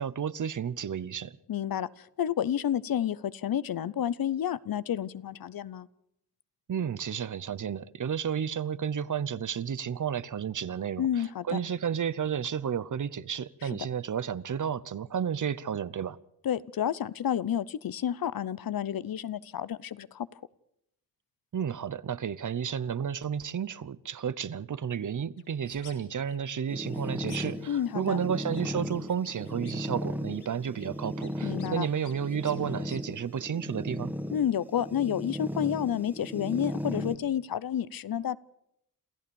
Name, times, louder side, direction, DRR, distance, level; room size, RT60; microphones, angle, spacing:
voice 1, 0.0-1.3 6.7-16.2 21.5-34.1, right 8 dB, 55° right, 0.8 m, -32 dB
voice 2, 1.5-5.9 11.0-11.6 13.6-13.7 16.4-20.3 27.7-28.2 31.4-31.9 34.3-38.4, left 9 dB, 65° left, 0.7 m, -30 dB
sound 1, 25.4-26.0 26.3-27.7 28.0-29.9 30.2-33.0, left 6 dB, 85° left, 3.4 m, -54 dB
sound 2, 26.7-37.2, equal, 5° right, 1.8 m, -36 dB
27.5 x 14.0 x 7.0 m
cardioid pair, 75°, 37 cm